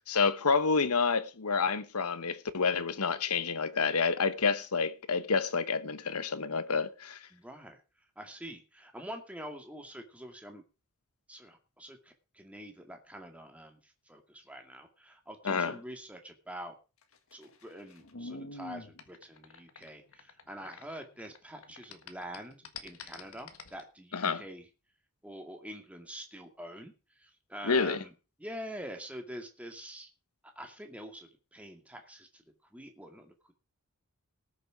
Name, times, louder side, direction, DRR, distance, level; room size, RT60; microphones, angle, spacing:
voice 1, 0.1-7.2 15.4-15.8 24.1-24.4 27.6-28.0, left 5 dB, 80° left, 1.1 m, -29 dB
voice 2, 7.3-7.8 8.2-10.6 11.3-16.7 17.3-24.7 25.2-28.1 28.4-30.1 30.6-32.4 32.7-33.5, equal, 5° right, 2.1 m, -46 dB
sound 1, 17.0-21.4 21.6-23.8, left 3 dB, 65° left, 1.7 m, -46 dB
19.0 x 6.8 x 4.9 m
head